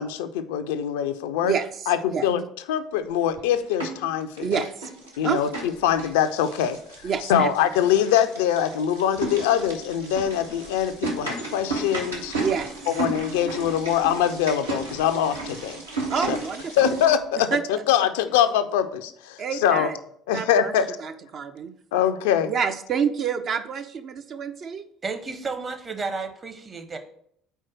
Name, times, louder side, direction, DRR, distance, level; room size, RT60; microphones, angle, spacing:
voice 1, 0.0-1.5 1.9-2.4 2.7-4.5 5.2-6.8 7.3-12.3 12.9-15.8 16.3-16.4 16.8-19.9 20.3-21.0 21.9-22.5, left 9 dB, 65° left, 0.4 m, -23 dB
voice 2, 1.4-2.3 4.4-4.9 5.2-5.4 7.0-7.5 12.4-12.7 16.1-16.9 17.5-17.6 19.4-20.0 20.3-21.7 22.5-24.8, right 6 dB, 45° right, 0.4 m, -28 dB
Old manual water pump, 3.2-4.1 4.4-17.1, right 2 dB, 80° right, 1.0 m, -34 dB
voice 3, 25.0-27.0, right 4 dB, 30° right, 0.8 m, -32 dB
4.5 x 4.3 x 5.9 m
figure-of-eight pair, 55°, 0 cm